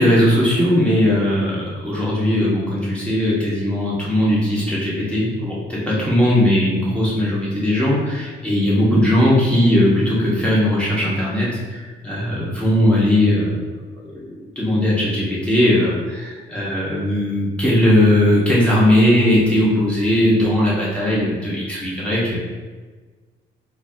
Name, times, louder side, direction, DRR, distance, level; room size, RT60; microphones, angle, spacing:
voice 1, 0.0-13.6 14.0-22.4, left 1 dB, 5° left, -7 dB, 1.4 m, -18 dB
4.1 x 2.7 x 2.8 m, 1.4 s
cardioid pair, 90°, 20 cm